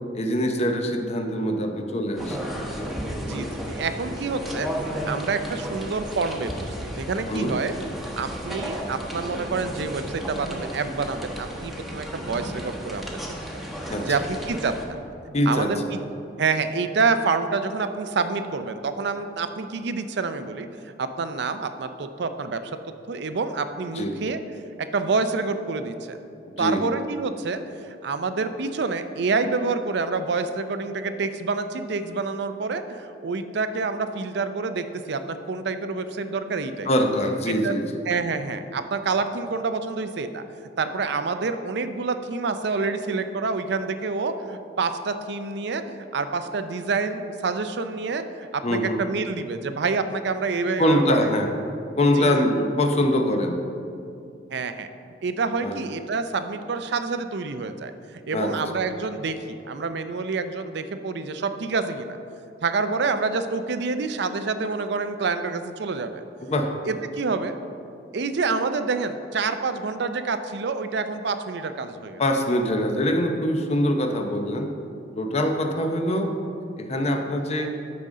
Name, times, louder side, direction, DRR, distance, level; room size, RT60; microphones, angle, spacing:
voice 1, 0.1-2.9 7.3-7.6 13.9-14.1 15.3-15.7 24.0-24.1 26.6-26.8 36.9-37.9 48.6-49.0 50.8-51.5 52.0-53.6 55.6-55.8 58.3-58.5 66.4-66.7 72.2-74.7 75.2-76.3 76.8-77.7, left 1 dB, 35° left, 4 dB, 0.7 m, -23 dB
sound 1, 2.2-14.8, equal, ahead, 0.9 m, -33 dB
voice 2, 3.2-6.5 6.8-7.7 8.2-13.1 14.0-14.7 15.3-15.8 16.4-20.7 21.0-22.6 23.1-24.4 24.9-26.2 26.6-27.6 27.9-36.9 37.5-37.7 38.1-40.4 40.8-51.3 52.2-52.5 54.5-54.9 55.2-57.9 58.3-62.2 62.6-66.2 66.9-67.6 68.1-72.2, right 4 dB, 65° right, 9 dB, 0.5 m, -27 dB
13.0 x 5.2 x 3.7 m, 2.6 s
head